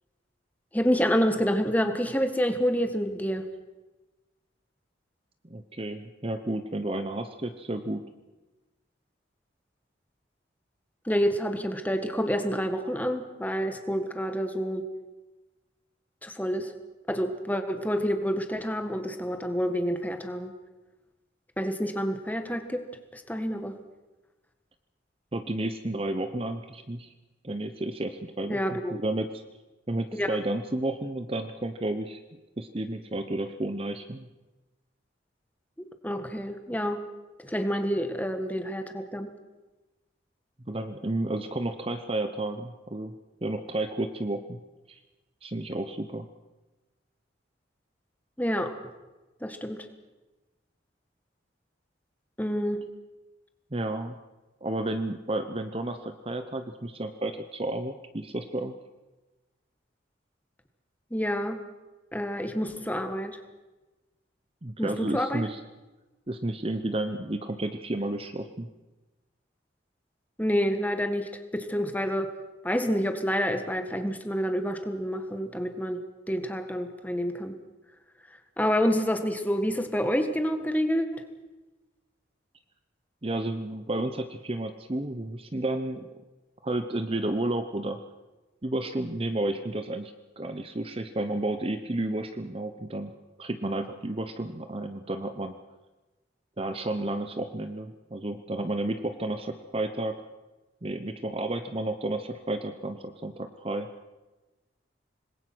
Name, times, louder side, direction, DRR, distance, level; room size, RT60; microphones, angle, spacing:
voice 1, 0.7-3.4 11.0-14.9 16.2-16.7 17.1-20.5 21.6-22.8 23.1-23.7 28.5-29.0 30.1-30.4 36.0-37.0 37.4-39.3 48.4-48.7 49.4-49.8 52.4-52.8 61.1-61.6 62.1-63.4 64.8-65.4 70.4-72.3 72.6-76.0 76.3-77.5 78.6-81.2, equal, 10° left, 7 dB, 1.7 m, -28 dB
voice 2, 5.4-8.0 25.3-27.1 27.4-29.4 29.9-32.2 32.6-34.3 40.7-43.1 43.4-44.6 44.9-45.0 45.4-46.3 53.7-54.1 54.6-58.7 64.6-65.6 66.3-68.7 83.2-86.1 86.6-88.0 88.6-93.1 93.4-95.6 96.6-100.2 100.8-103.9, right 1 dB, 30° right, 8 dB, 0.9 m, -32 dB
26.5 x 20.5 x 6.2 m, 1.2 s
head